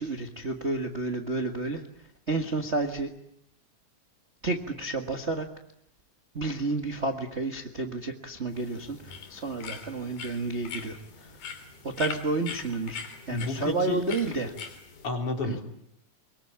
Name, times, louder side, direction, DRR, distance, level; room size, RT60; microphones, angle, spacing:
voice 1, 0.0-1.8 2.3-3.1 4.4-5.5 6.3-11.3 11.8-14.5 15.4-15.6, right 3 dB, 40° right, 3 dB, 1.0 m, -31 dB
sound 1, 8.5-15.1, left 6 dB, 70° left, 4.6 m, -42 dB
voice 2, 13.3-14.0 15.0-15.6, left 3 dB, 40° left, 2 dB, 4.8 m, -31 dB
24.0 x 23.0 x 8.9 m, 0.76 s
omnidirectional pair, 3.9 m